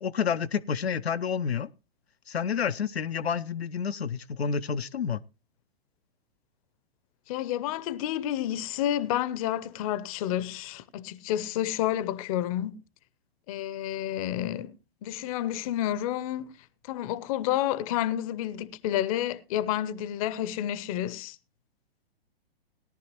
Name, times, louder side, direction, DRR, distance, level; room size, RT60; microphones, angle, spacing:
voice 1, 0.0-1.7 2.3-5.2, left 7 dB, 85° left, 0.5 m, -29 dB
voice 2, 7.3-12.8 13.5-14.8 15.0-16.5 16.8-21.4, left 12 dB, 35° left, 0.6 m, -30 dB
17.5 x 10.5 x 3.0 m
figure-of-eight pair, 110°, 31 cm